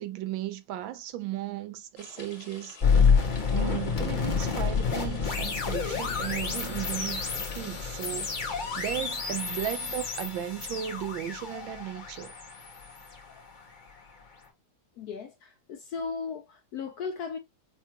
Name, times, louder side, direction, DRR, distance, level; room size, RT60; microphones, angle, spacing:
voice 1, 0.0-2.8 3.5-8.3 8.8-12.3, right 13 dB, 90° right, 1.4 m, -35 dB
sound 1, 2.0-8.9, left 3 dB, 35° left, 1.5 m, -49 dB
sound 2, 2.8-13.8, left 5 dB, 55° left, 0.5 m, -29 dB
voice 2, 15.0-17.4, left 5 dB, 75° left, 0.9 m, -36 dB
5.5 x 2.3 x 2.8 m
omnidirectional pair, 2.1 m